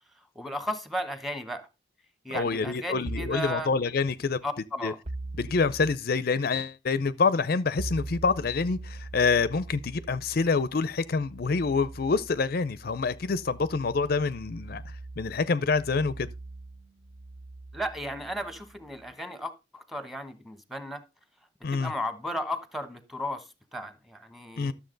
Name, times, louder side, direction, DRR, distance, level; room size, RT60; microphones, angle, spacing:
voice 1, 0.3-1.7 2.2-3.7 4.4-5.0 17.7-21.0 21.7-24.7, equal, ahead, 1.1 m, -35 dB
voice 2, 2.3-4.4 4.8-4.9 5.4-16.3 21.6-21.9 24.6-24.7, left 4 dB, 50° left, 0.5 m, -27 dB
sound 1, 3.1-3.5 5.0-6.0 7.8-19.1, right 2 dB, 35° right, 0.7 m, -42 dB
12.5 x 7.2 x 3.9 m
head